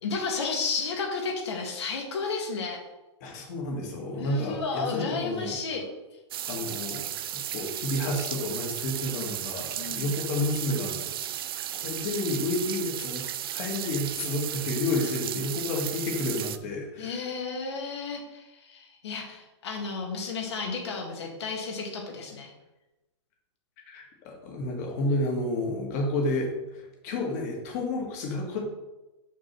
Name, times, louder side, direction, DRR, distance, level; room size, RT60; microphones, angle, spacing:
voice 1, 0.0-2.8 4.1-5.8 9.8-10.1 17.0-22.5, left 4 dB, 65° left, 1 dB, 2.0 m, -32 dB
voice 2, 3.2-5.5 6.5-7.0 7.3-11.1 11.7-13.3 13.5-17.2 23.9-28.6, left 2 dB, 35° left, 0 dB, 1.7 m, -30 dB
sound 1, 6.3-16.6, right 11 dB, 50° right, 0.4 m, -34 dB
6.3 x 3.7 x 6.0 m, 1.0 s
hypercardioid pair, 165°, 15 cm